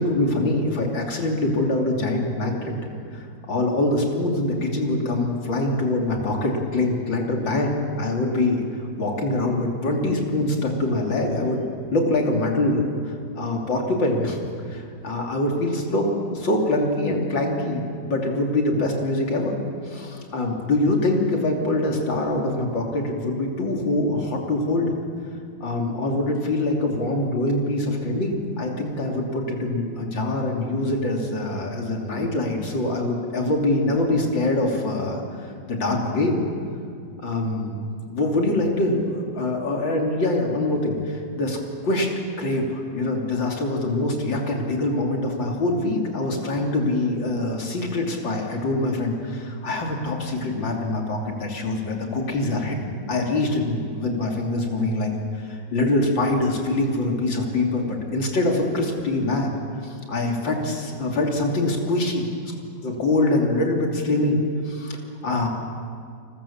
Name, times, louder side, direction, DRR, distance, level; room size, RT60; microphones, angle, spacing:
voice 1, 0.0-2.7 3.1-8.6 9.0-11.6 11.9-14.4 14.7-19.5 19.8-24.9 25.6-36.5 37.2-37.8 38.1-41.6 41.8-42.1 42.4-59.5 59.8-62.3 62.8-65.5, left 2 dB, 80° left, 0 dB, 3.8 m, -24 dB
29.5 x 20.5 x 7.3 m, 2.3 s
omnidirectional pair, 2.0 m